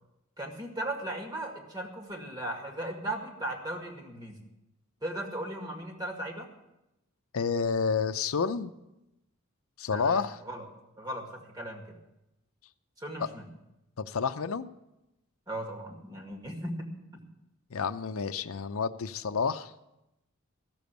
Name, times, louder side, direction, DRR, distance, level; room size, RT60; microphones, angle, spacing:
voice 1, 0.4-4.4 5.0-6.5 9.9-10.7 11.0-12.0 13.0-13.5 15.5-17.3, right 1 dB, 20° right, 1 dB, 1.9 m, -37 dB
voice 2, 7.3-8.7 9.8-10.4 14.0-14.7 17.7-19.7, left 5 dB, 80° left, 9 dB, 0.6 m, -29 dB
15.0 x 6.9 x 8.1 m, 0.91 s
head